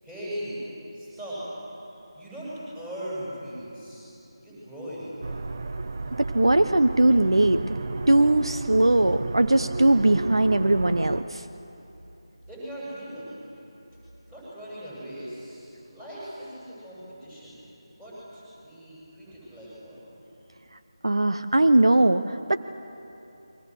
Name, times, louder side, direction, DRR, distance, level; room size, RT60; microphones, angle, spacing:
voice 1, 0.0-0.6 0.9-1.4 2.1-4.0 4.4-5.4 12.5-13.5 14.3-17.6 18.0-20.1, equal, 10° right, -8 dB, 7.3 m, -39 dB
sound 1, 5.2-11.2, right 3 dB, 40° right, 0.8 m, -33 dB
voice 2, 6.2-7.8 8.1-11.4 21.0-22.6, right 1 dB, 70° right, 9 dB, 0.8 m, -20 dB
29.0 x 23.0 x 6.4 m, 2.9 s
figure-of-eight pair, 160°, 3 cm